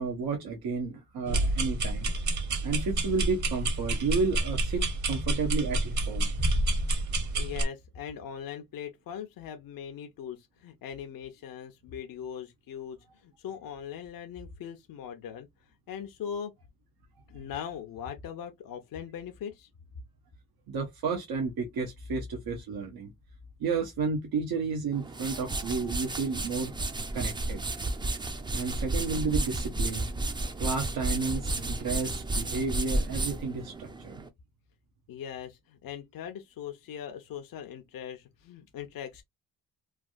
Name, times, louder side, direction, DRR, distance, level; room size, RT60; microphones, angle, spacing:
voice 1, 0.0-2.1 2.6-6.3 17.3-17.5 20.7-23.1 23.6-26.7 27.1-27.6 28.5-30.1 30.6-34.2, right 4 dB, 85° right, 0.8 m, -32 dB
sound 1, 1.3-7.6, right 2 dB, 55° right, 1.1 m, -29 dB
voice 2, 7.3-15.5 15.9-16.5 17.3-19.7 35.1-39.2, left 8 dB, 65° left, 0.7 m, -40 dB
sound 2, 24.9-34.3, right 2 dB, 15° right, 0.4 m, -32 dB
3.3 x 2.3 x 2.4 m
cardioid pair, 105°, 36 cm